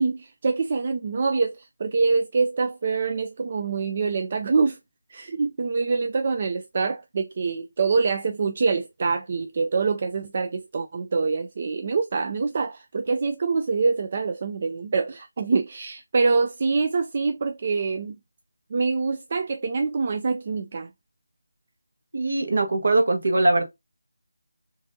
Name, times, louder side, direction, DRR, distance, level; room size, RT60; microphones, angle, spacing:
voice 1, 0.0-4.8 5.1-18.2 18.7-20.9, right 4 dB, 40° right, 0.3 m, -25 dB
voice 2, 22.1-23.6, right 2 dB, 65° right, 1.2 m, -21 dB
4.7 x 2.6 x 2.6 m
figure-of-eight pair, 165°, 0 cm